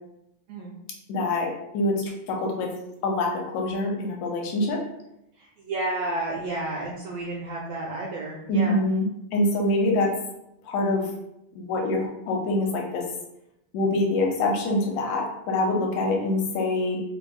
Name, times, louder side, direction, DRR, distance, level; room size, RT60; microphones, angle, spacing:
voice 1, 1.1-2.7 3.0-4.8 8.5-9.1 9.3-10.1 10.6-11.1 11.6-13.1 13.7-17.0, left 2 dB, 80° left, 0 dB, 1.9 m, -25 dB
voice 2, 5.4-8.8, right 2 dB, 80° right, -3 dB, 1.4 m, -31 dB
4.4 x 2.7 x 2.2 m, 0.83 s
omnidirectional pair, 3.3 m